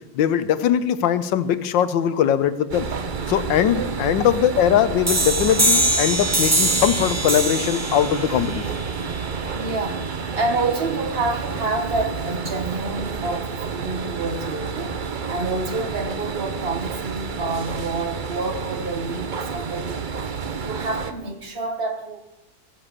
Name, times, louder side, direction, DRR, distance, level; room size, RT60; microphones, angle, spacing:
voice 1, 0.1-2.9 3.3-8.8, left 9 dB, 75° left, 1.4 m, -21 dB
sound 1, 2.7-21.1, right 5 dB, 80° right, 0.4 m, -30 dB
sound 2, 5.1-10.5, right 1 dB, 15° right, 0.5 m, -24 dB
voice 2, 9.5-22.2, right 3 dB, 35° right, 1.5 m, -28 dB
17.0 x 7.9 x 6.7 m
omnidirectional pair, 2.1 m